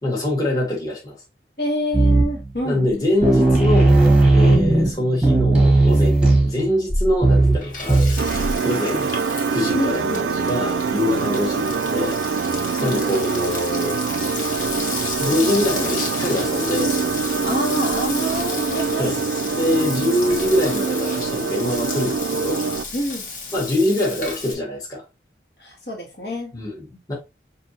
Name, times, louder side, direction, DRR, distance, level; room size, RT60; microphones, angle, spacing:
voice 1, 0.0-1.2 2.6-4.0 4.3-9.1 9.5-14.0 15.2-16.9 19.0-19.2 19.5-22.6 23.5-25.0 26.5-27.2, left 1 dB, 20° left, 1.3 m, -24 dB
voice 2, 1.6-2.9 9.7-10.2 12.8-13.2 15.8-15.9 16.1-16.3 17.4-19.2 22.9-23.3 25.6-26.5, equal, 65° left, 1.6 m, -27 dB
sound 1, 1.9-2.5 2.9-3.0 3.2-8.6, right 2 dB, 5° right, 1.1 m, -16 dB
Frying (food), 7.3-24.5, left 4 dB, 45° left, 1.2 m, -32 dB
sound 2, 8.2-22.8, right 5 dB, 85° right, 0.4 m, -24 dB
6.1 x 2.7 x 2.8 m
head